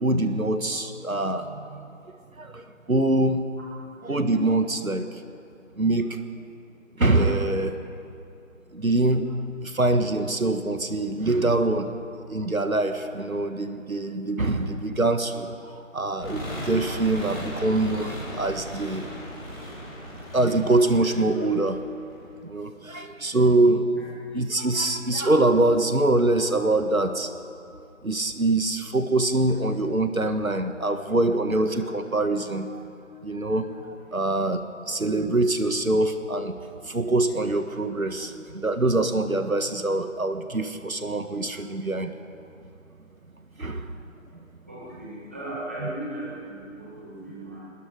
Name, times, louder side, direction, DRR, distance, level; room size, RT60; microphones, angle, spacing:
voice 1, 0.0-1.8 2.4-2.6 2.9-3.4 4.0-5.1 5.8-6.2 7.0-7.7 8.7-9.3 9.6-11.9 12.3-15.5 15.9-19.1 20.3-21.8 22.5-23.9 24.3-27.3 28.0-32.7 33.2-33.7 34.1-34.6 34.9-36.5 36.9-38.3 38.6-42.1 43.6-43.8 45.8-45.9, right 2 dB, 90° right, 8 dB, 1.8 m, -24 dB
sound 1, 16.2-22.3, equal, 20° left, 6.0 m, -37 dB
voice 2, 44.7-47.6, right 1 dB, 10° right, -8 dB, 1.9 m, -37 dB
27.5 x 20.5 x 5.2 m, 2.5 s
figure-of-eight pair, 170°, 40 cm